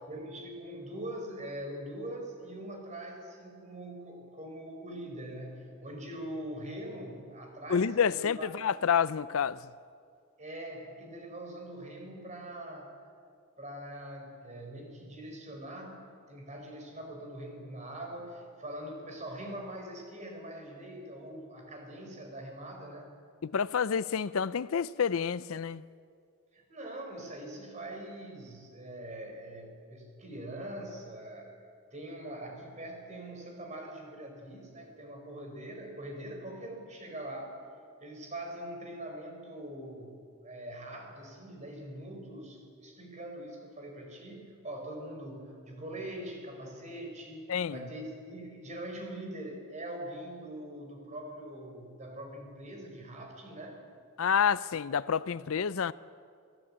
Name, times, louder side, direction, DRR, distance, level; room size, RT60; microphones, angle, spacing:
voice 1, 0.1-8.5 10.4-12.9 13.6-23.1 26.5-31.5 31.9-37.6 38.0-53.8, right 1 dB, 30° right, 4.8 m, -43 dB
voice 2, 7.7-9.6 23.4-25.8 47.5-47.8 54.2-55.9, left 7 dB, 65° left, 0.5 m, -28 dB
26.5 x 16.0 x 8.7 m
head